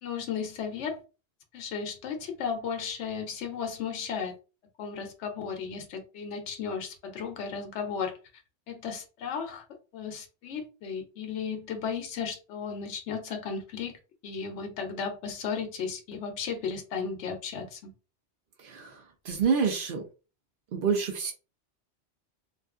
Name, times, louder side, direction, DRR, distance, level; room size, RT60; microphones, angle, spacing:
voice 1, 0.0-1.0 1.5-4.3 4.8-8.2 8.7-9.6 9.9-17.9, left 6 dB, 90° left, 0.9 m, -35 dB
voice 2, 18.6-20.0 20.7-21.3, right 6 dB, 60° right, 0.7 m, -28 dB
2.6 x 2.4 x 2.4 m
omnidirectional pair, 1.1 m